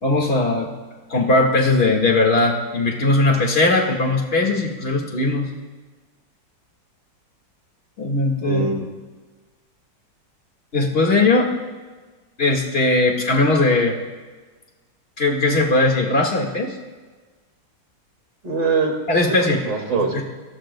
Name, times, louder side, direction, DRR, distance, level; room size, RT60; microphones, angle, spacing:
voice 1, 0.0-0.7 1.1-5.5 8.0-8.7 10.7-11.5 12.4-14.0 15.2-16.7 19.1-19.6 20.1-20.2, left 2 dB, 35° left, 1 dB, 2.0 m, -19 dB
voice 2, 8.4-8.8 18.4-18.9 19.3-20.2, right 4 dB, 85° right, 1 dB, 3.1 m, -23 dB
27.0 x 18.0 x 2.2 m, 1.3 s
omnidirectional pair, 1.9 m